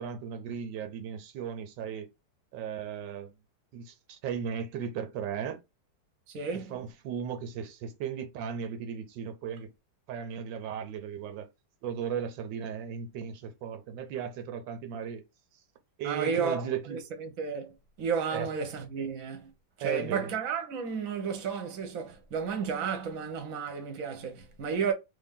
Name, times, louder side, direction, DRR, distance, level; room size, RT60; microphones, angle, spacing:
voice 1, 0.0-2.1 2.5-3.3 3.7-5.6 6.5-9.7 10.1-11.5 11.8-15.2 16.0-17.0 18.3-18.5 19.8-20.3, right 8 dB, 85° right, 1.3 m, -36 dB
voice 2, 6.3-6.8 16.0-19.5 19.8-24.9, right 6 dB, 55° right, 1.2 m, -33 dB
3.5 x 2.7 x 3.5 m
omnidirectional pair, 1.9 m